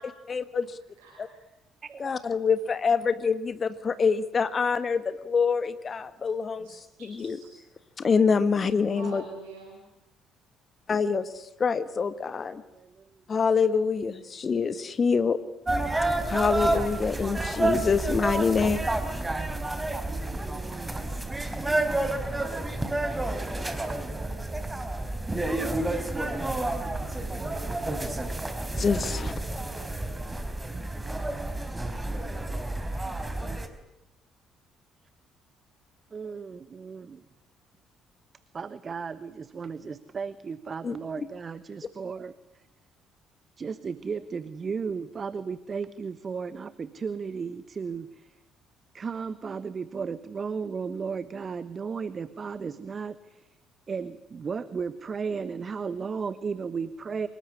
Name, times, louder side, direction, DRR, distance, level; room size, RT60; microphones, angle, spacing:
voice 1, 0.3-0.6 1.2-1.3 2.0-6.7 7.2-7.4 8.0-9.2 10.9-11.3 11.6-12.6 13.3-15.4 16.3-18.8 28.8-29.3 40.8-41.0, left 5 dB, 35° left, 13 dB, 1.5 m, -25 dB
voice 2, 1.0-1.4 6.6-7.5 8.9-9.8, right 4 dB, 70° right, 1 dB, 5.0 m, -45 dB
voice 3, 12.7-13.1 20.3-21.0 33.3-33.6 36.1-37.2 38.5-42.6 43.6-48.3 48.9-53.5 53.9-57.3, right 5 dB, 35° right, 15 dB, 1.2 m, -35 dB
sound 1, 15.7-33.7, right 2 dB, 15° right, 3.8 m, -30 dB
25.5 x 22.0 x 10.0 m, 0.90 s
figure-of-eight pair, 50°, 0 cm